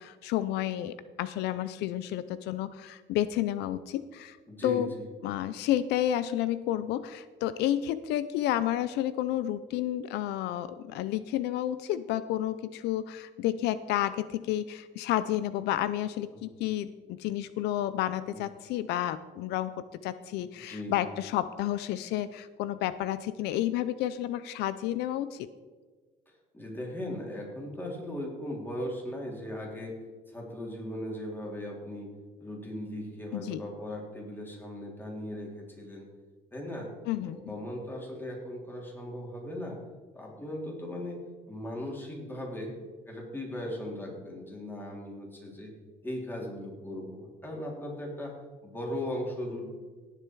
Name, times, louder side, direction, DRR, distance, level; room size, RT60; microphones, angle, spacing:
voice 1, 0.0-4.4 4.6-4.9 5.2-19.7 20.0-25.5 33.3-33.6 37.1-37.5, left 12 dB, 85° left, 14 dB, 0.5 m, -31 dB
voice 2, 4.5-5.1 16.3-16.4 20.7-21.0 26.5-30.0 30.3-32.1 32.4-36.1 36.5-36.9 37.2-39.8 40.1-42.8 43.1-45.7 46.0-48.4 48.6-49.7, left 1 dB, 10° left, -2 dB, 3.5 m, -38 dB
17.5 x 6.7 x 4.7 m, 1.4 s
cardioid pair, 110°, 17 cm